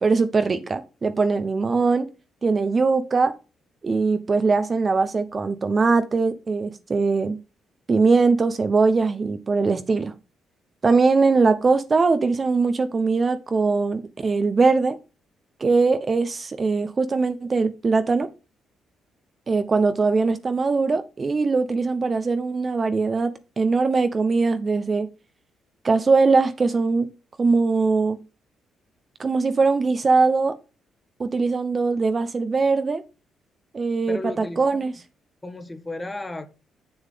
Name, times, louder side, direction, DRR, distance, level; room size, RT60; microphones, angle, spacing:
voice 1, 0.0-2.1 2.4-3.3 3.8-7.4 7.9-10.1 10.8-15.0 15.6-18.3 19.5-25.1 25.8-27.1 27.4-28.2 29.2-30.6 31.2-33.0 33.7-34.2 34.6-34.9, right 4 dB, 35° right, 0.8 m, -21 dB
voice 2, 34.1-34.8 35.4-36.5, left 2 dB, 15° left, 1.4 m, -34 dB
7.2 x 6.9 x 3.6 m
cardioid pair, 90°, 0 cm